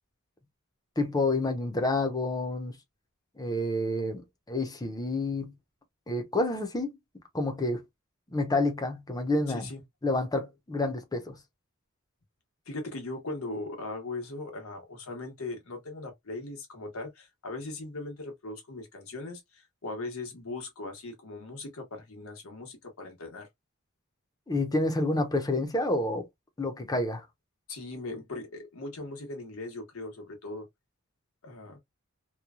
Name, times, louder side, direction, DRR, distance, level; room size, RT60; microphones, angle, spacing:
voice 1, 1.0-2.8 3.4-5.5 6.1-7.0 7.3-7.8 8.3-9.7 10.0-11.4 24.5-26.3 26.6-27.3, left 2 dB, 20° left, 0.7 m, -29 dB
voice 2, 9.5-9.8 12.7-23.5 27.7-30.7 31.4-31.8, left 2 dB, 85° left, 1.1 m, -39 dB
3.0 x 2.2 x 2.3 m
head